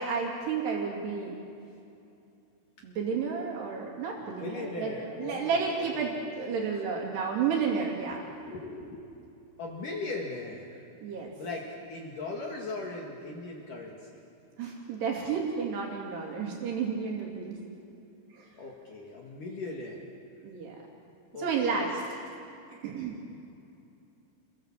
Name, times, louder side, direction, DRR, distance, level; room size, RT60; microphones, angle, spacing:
voice 1, 0.0-1.4 2.8-4.9 5.2-8.2 11.0-11.3 14.6-17.6 18.3-18.5 20.4-20.8 21.4-21.9 22.8-23.2, right 5 dB, 80° right, -1 dB, 4.8 m, -31 dB
voice 2, 4.4-6.2 6.7-6.8 8.1-9.1 9.6-10.9 11.3-14.2 18.6-20.1 21.3-22.0, left 3 dB, 55° left, -1 dB, 3.5 m, -39 dB
29.5 x 22.5 x 7.5 m, 2.7 s
omnidirectional pair, 4.7 m